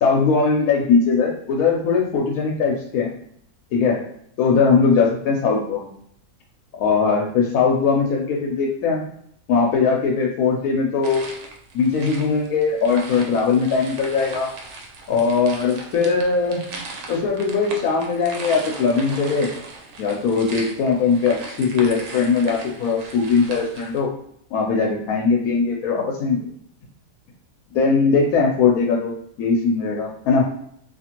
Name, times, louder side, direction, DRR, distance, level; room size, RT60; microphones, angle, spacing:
voice 1, 0.0-3.1 3.7-4.0 4.4-5.8 6.7-9.0 9.5-11.2 11.7-14.5 15.1-16.6 17.1-19.5 20.0-24.1 24.5-26.4 27.7-29.1 29.4-30.4, left 5 dB, 80° left, -1 dB, 1.0 m, -20 dB
sound 1, 11.0-24.0, right 3 dB, 85° right, 1.1 m, -38 dB
2.6 x 2.5 x 2.8 m, 0.69 s
omnidirectional pair, 1.5 m